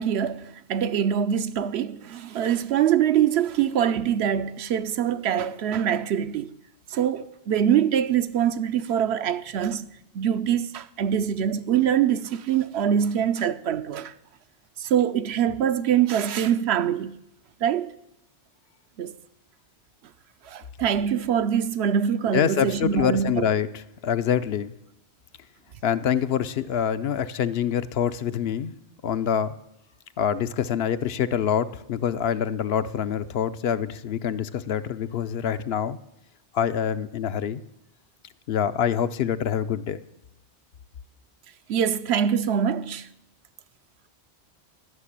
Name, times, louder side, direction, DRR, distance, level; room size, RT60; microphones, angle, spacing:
voice 1, 0.0-6.5 6.9-9.9 10.1-14.1 14.8-17.2 17.6-17.9 19.0-19.1 20.5-23.5 41.7-43.1, right 9 dB, 75° right, 0.9 m, -24 dB
voice 2, 22.3-24.7 25.8-28.7 29.0-29.5 30.2-36.0 36.5-37.6 38.5-40.0, left 8 dB, 70° left, 0.8 m, -25 dB
13.0 x 6.7 x 9.8 m
omnidirectional pair, 1.1 m